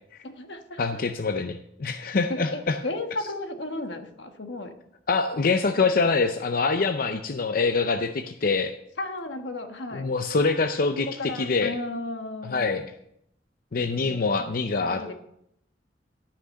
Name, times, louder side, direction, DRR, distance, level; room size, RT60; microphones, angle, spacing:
voice 1, 0.2-1.0 2.3-4.7 9.0-10.0 11.2-12.8 14.0-15.1, left 2 dB, 80° left, 6 dB, 1.4 m, -35 dB
voice 2, 0.8-2.8 5.1-8.7 9.9-11.7 12.5-12.8 13.7-15.0, left 4 dB, 50° left, 7 dB, 0.6 m, -25 dB
12.5 x 5.9 x 6.4 m, 0.76 s
head